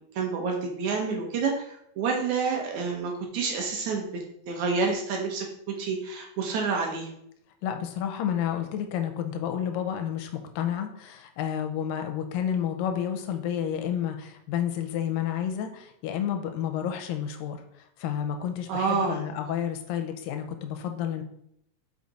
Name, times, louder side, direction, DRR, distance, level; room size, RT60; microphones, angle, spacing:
voice 1, 0.2-7.1 18.7-19.2, right 4 dB, 70° right, 1 dB, 2.1 m, -28 dB
voice 2, 7.6-21.2, left 9 dB, 90° left, 6 dB, 2.4 m, -30 dB
6.4 x 5.0 x 4.1 m, 0.73 s
omnidirectional pair, 4.0 m